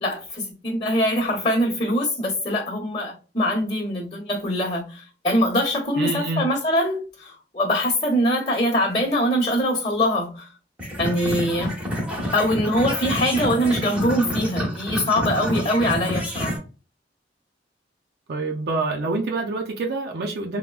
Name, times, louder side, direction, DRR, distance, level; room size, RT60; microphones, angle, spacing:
voice 1, 0.0-10.5 11.0-11.7 12.3-16.5, equal, 35° left, 1.1 m, -23 dB
voice 2, 6.0-6.4 18.3-20.6, right 3 dB, 60° right, 0.4 m, -26 dB
sound 1, 10.8-16.6, equal, 5° right, 1.0 m, -28 dB
3.5 x 2.1 x 2.3 m
head